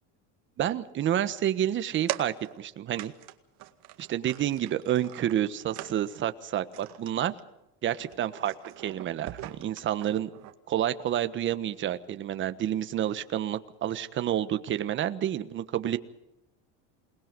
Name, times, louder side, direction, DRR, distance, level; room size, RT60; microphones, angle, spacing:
voice 1, 0.6-3.1 4.0-7.3 7.8-8.5 8.8-10.3 10.7-16.0, right 11 dB, 35° right, 11 dB, 1.4 m, -29 dB
sound 1, 2.1-2.7 3.0-3.3 3.6-6.2 6.7-7.1 7.4-7.6 8.0-10.5, right 15 dB, 55° right, 2.0 m, -41 dB
28.5 x 20.0 x 5.4 m, 0.88 s
cardioid pair, 145°, 34 cm